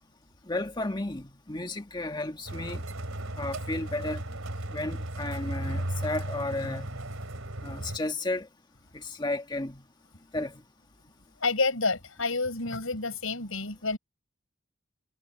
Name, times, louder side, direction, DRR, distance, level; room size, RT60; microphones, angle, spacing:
voice 1, 0.5-2.8 3.4-4.2 4.7-6.9 7.6-8.5 8.9-9.8 10.3-10.5, left 2 dB, 20° left, 1.6 m, -33 dB
sound 1, 2.5-8.0, right 1 dB, 85° right, 3.4 m, -35 dB
voice 2, 11.4-14.0, left 3 dB, 80° left, 5.4 m, -29 dB
head